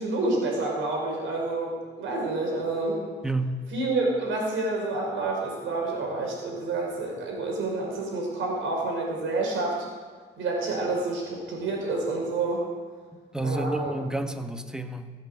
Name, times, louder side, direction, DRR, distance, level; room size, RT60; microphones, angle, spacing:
voice 1, 0.0-3.0 3.7-9.8 10.4-12.6 13.4-13.9, right 2 dB, 85° right, -1 dB, 5.4 m, -28 dB
voice 2, 3.2-3.5 13.3-15.1, right 2 dB, 5° right, 7 dB, 1.3 m, -30 dB
16.0 x 8.6 x 8.1 m, 1.5 s
cardioid pair, 90°, 20 cm